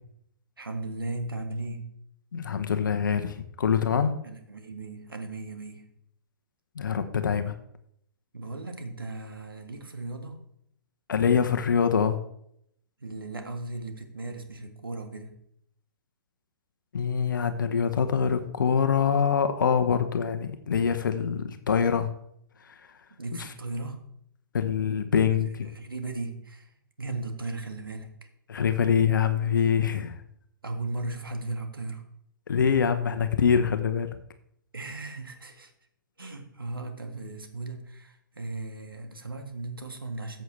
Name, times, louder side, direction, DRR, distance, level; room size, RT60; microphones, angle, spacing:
voice 1, 0.6-1.9 4.2-5.9 8.3-10.4 13.0-15.4 21.3-21.4 23.2-24.0 25.4-28.1 30.6-32.0 34.7-35.7 36.2-40.4, right 2 dB, 85° right, 4 dB, 2.0 m, -37 dB
voice 2, 2.3-4.2 6.8-7.5 11.1-12.2 16.9-22.1 22.7-22.8 24.5-25.7 28.5-30.2 32.5-34.1, left 7 dB, 65° left, 9 dB, 0.9 m, -24 dB
14.0 x 7.9 x 3.3 m, 0.72 s
figure-of-eight pair, 120°, 11 cm